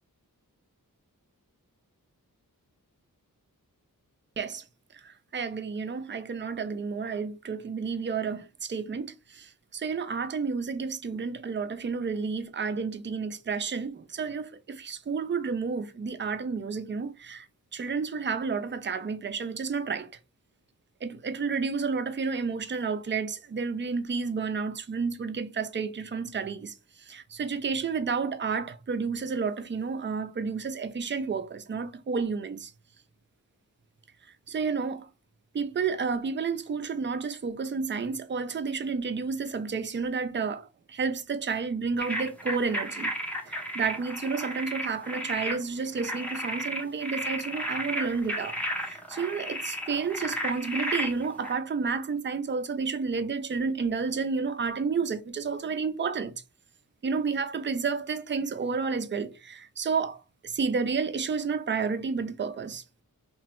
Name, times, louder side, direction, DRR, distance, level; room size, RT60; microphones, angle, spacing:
voice 1, 5.0-17.5 17.7-20.1 21.0-26.7 27.1-32.7 34.5-35.1 35.5-43.1 43.5-56.3 57.0-62.8, right 5 dB, 35° right, 0.4 m, -31 dB
sound 1, 42.0-51.5, equal, 5° left, 0.7 m, -33 dB
2.9 x 2.2 x 3.0 m
wide cardioid pair, 55°, 36 cm